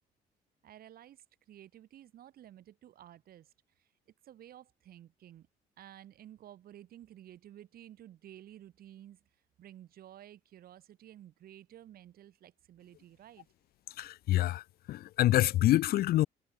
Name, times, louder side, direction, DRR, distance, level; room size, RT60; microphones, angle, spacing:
voice 1, 0.6-3.9 4.2-5.5 5.8-9.2 9.6-13.5, right 12 dB, 60° right, 5.6 m, -53 dB
voice 2, 14.0-14.6 14.9-16.3, left 15 dB, 65° left, 0.7 m, -26 dB
cardioid pair, 110°, 17 cm